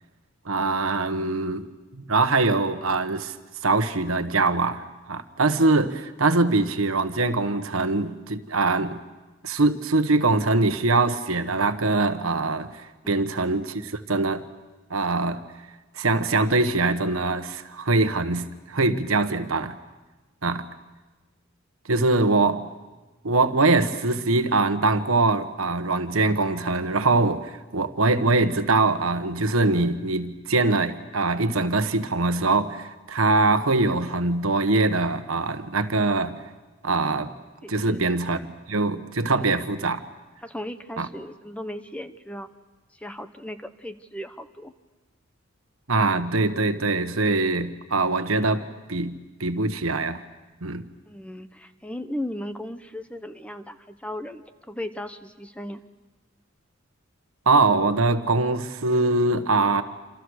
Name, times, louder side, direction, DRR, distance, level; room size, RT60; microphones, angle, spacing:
voice 1, 0.4-1.7 1.9-3.3 3.6-9.0 9.4-14.4 14.9-15.4 15.9-19.8 20.4-20.7 21.9-22.6 23.2-36.4 36.8-37.3 37.7-40.0 41.0-41.1 45.9-50.2 50.6-50.9 57.4-59.8, right 3 dB, 85° right, 9 dB, 1.4 m, -23 dB
voice 2, 37.6-38.0 39.3-39.6 40.4-42.5 42.9-44.7 51.1-55.8, left 1 dB, 5° left, 9 dB, 0.9 m, -36 dB
27.5 x 27.5 x 6.5 m, 1.2 s
head